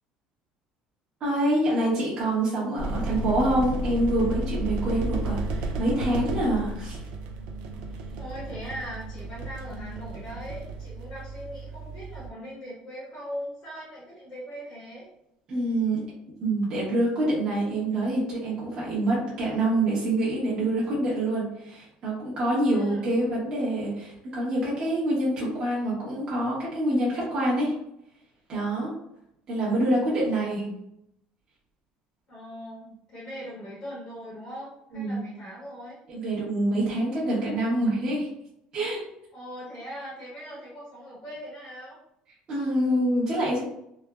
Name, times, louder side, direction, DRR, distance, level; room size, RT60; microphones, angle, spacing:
voice 1, 1.2-7.0 15.5-16.0 16.4-27.7 28.5-28.9 29.5-30.7 34.9-35.2 36.1-38.3 38.7-39.0 42.5-43.6, right 1 dB, 30° right, -7 dB, 0.9 m, -26 dB
sound 1, 2.8-12.3, right 2 dB, 75° right, 0.4 m, -33 dB
voice 2, 8.2-15.1 22.7-23.1 32.3-36.0 39.3-42.0, equal, 45° left, -6 dB, 0.9 m, -40 dB
3.1 x 2.0 x 2.3 m, 0.79 s
cardioid pair, 180°, 3 cm